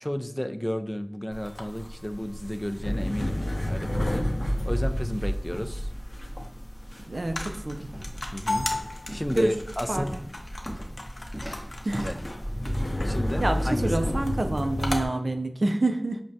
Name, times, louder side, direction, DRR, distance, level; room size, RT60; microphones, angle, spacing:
voice 1, 0.0-5.9 8.3-10.1 12.0-12.2 13.0-14.1, equal, 15° left, 7 dB, 0.3 m, -33 dB
sound 1, 1.3-15.0, left 1 dB, 70° left, 0.6 m, -31 dB
voice 2, 7.1-7.9 9.4-9.5 9.9-10.2 11.8-12.1 13.4-16.2, right 2 dB, 75° right, 6 dB, 0.4 m, -27 dB
sound 2, 7.5-15.0, equal, 30° right, 1.1 m, -40 dB
5.9 x 2.2 x 2.6 m, 0.77 s
wide cardioid pair, 45°, 0 cm